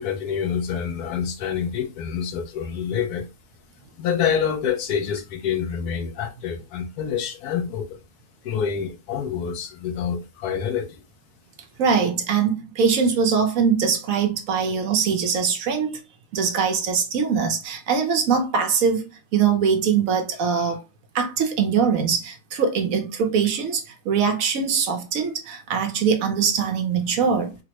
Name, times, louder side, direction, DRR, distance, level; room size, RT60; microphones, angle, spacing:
voice 1, 0.0-3.3 4.0-8.0 8.4-11.0, left 7 dB, 80° left, 1.1 m, -27 dB
voice 2, 11.8-16.0 16.3-20.8 21.1-27.6, right 6 dB, 70° right, 1.0 m, -22 dB
3.5 x 2.0 x 2.8 m
omnidirectional pair, 1.6 m